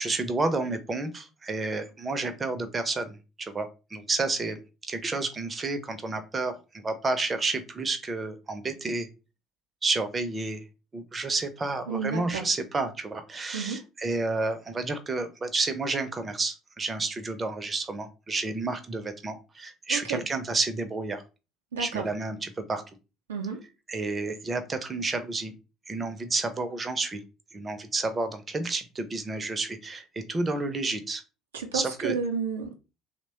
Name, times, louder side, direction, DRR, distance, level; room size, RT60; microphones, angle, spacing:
voice 1, 0.0-4.6 4.9-9.1 9.8-10.6 10.9-21.2 21.8-22.8 23.9-25.5 25.9-27.2 27.5-31.2 31.7-32.1, right 3 dB, 30° right, 0.5 m, -30 dB
voice 2, 11.9-12.5 13.5-13.8 19.9-20.2 21.7-22.1 23.3-23.6 31.5-32.7, right 5 dB, 80° right, 0.4 m, -31 dB
2.9 x 2.1 x 2.8 m
figure-of-eight pair, 55°, 0 cm